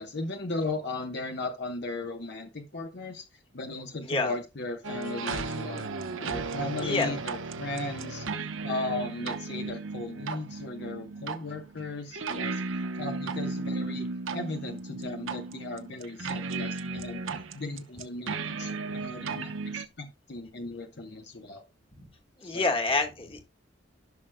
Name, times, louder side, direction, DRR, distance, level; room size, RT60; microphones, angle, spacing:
voice 1, 0.0-5.8 6.2-8.3 8.6-12.6 12.9-14.1 14.3-21.6 22.4-22.7, left 2 dB, 60° left, 1.0 m, -37 dB
sound 1, 4.8-19.8, right 3 dB, 90° right, 0.9 m, -35 dB
voice 2, 22.4-23.4, left 3 dB, 30° left, 1.6 m, -27 dB
14.5 x 6.3 x 2.2 m
head